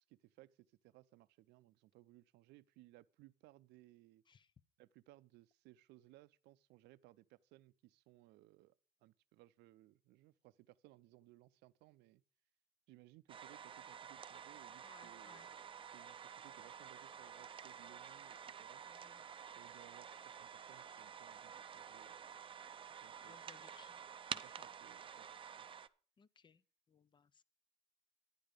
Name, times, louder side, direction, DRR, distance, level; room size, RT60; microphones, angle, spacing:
voice 1, 0.0-4.2 4.8-8.7 9.0-12.2 12.9-15.7 15.9-18.8 19.6-22.2 23.0-23.4 24.3-25.3 25.6-25.7, right 17 dB, 85° right, 0.5 m, -64 dB
sound 1, 13.3-25.9, right 7 dB, 30° right, 0.5 m, -50 dB
voice 2, 14.8-15.5 18.8-19.3 23.2-24.0 24.3-24.7 26.2-27.4, left 6 dB, 30° left, 0.5 m, -66 dB
10.5 x 9.8 x 5.0 m
cardioid pair, 110°, 17 cm